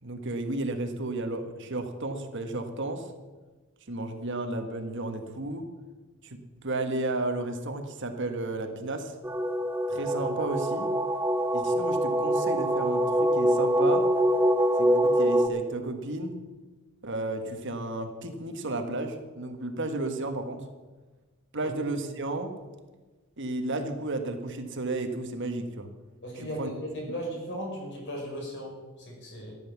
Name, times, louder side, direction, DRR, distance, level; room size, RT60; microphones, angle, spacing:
voice 1, 0.0-3.1 3.9-5.7 6.2-6.4 6.6-9.1 9.9-10.9 11.5-14.1 14.8-16.4 17.0-20.6 21.5-22.6 23.4-25.9 26.6-26.7, right 2 dB, 55° right, 6 dB, 1.5 m, -33 dB
sound 1, 9.2-15.5, equal, 10° right, 0.6 m, -24 dB
voice 2, 26.2-29.5, equal, 55° left, 0 dB, 5.6 m, -37 dB
14.5 x 10.5 x 7.2 m, 1.2 s
head